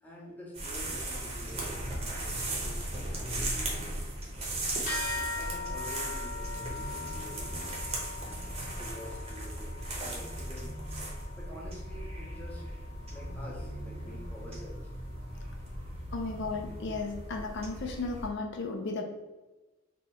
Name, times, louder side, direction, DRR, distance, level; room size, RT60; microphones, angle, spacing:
voice 1, 0.0-2.8 3.1-4.0 4.3-4.8 5.2-7.8 8.2-10.8 11.4-12.7 13.1-14.8, equal, 10° left, -4 dB, 0.7 m, -48 dB
sound 1, 0.5-18.3, right 1 dB, 30° right, 0.7 m, -37 dB
sound 2, 4.9-14.7, left 3 dB, 45° left, 0.8 m, -42 dB
voice 2, 16.1-19.0, left 3 dB, 60° left, 3 dB, 0.4 m, -35 dB
2.8 x 2.4 x 4.0 m, 1.1 s
head